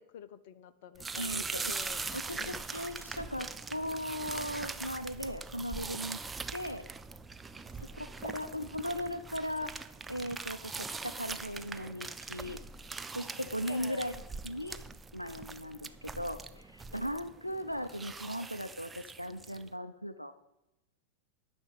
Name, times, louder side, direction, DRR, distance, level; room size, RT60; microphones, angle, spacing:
voice 1, 0.0-2.7 7.4-8.7 13.4-14.1 17.1-17.3, left 9 dB, 50° left, 13 dB, 0.7 m, -51 dB
sound 1, 1.0-19.7, right 4 dB, 10° right, 0.5 m, -42 dB
voice 2, 1.2-1.7 2.1-6.2 6.5-6.8 7.8-9.7 10.1-12.6 13.1-14.1 14.4-14.9 15.1-20.3, equal, 90° left, 11 dB, 0.5 m, -38 dB
10.0 x 6.2 x 8.8 m, 0.94 s
figure-of-eight pair, 90°, 0 cm